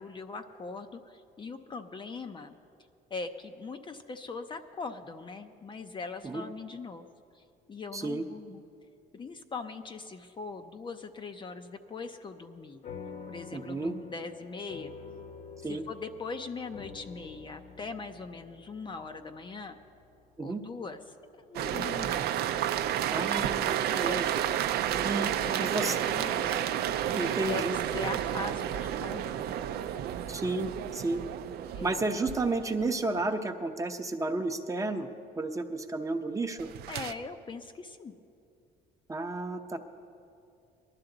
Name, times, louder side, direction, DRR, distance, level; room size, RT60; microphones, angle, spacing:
voice 1, 0.0-2.6 3.1-7.1 7.3-7.4 7.7-8.6 9.1-12.8 13.3-14.9 15.6-19.8 20.4-21.0 21.4-22.3 24.0-24.3 25.4-29.6 31.7-32.0 36.9-38.1, left 4 dB, 30° left, 7 dB, 0.6 m, -41 dB
voice 2, 7.9-8.2 13.5-13.9 15.6-15.8 20.4-20.6 23.1-24.3 25.0-25.3 25.6-26.0 27.2-27.8 30.3-31.2 31.8-35.1 35.4-36.7 39.1-39.8, right 2 dB, 20° right, 6 dB, 0.8 m, -32 dB
sound 1, 12.8-21.6, left 5 dB, 50° left, 1.1 m, -48 dB
sound 2, 21.5-33.1 36.6-37.1, right 10 dB, 70° right, 0.5 m, -31 dB
19.5 x 11.5 x 3.9 m, 2.5 s
cardioid pair, 110°, 17 cm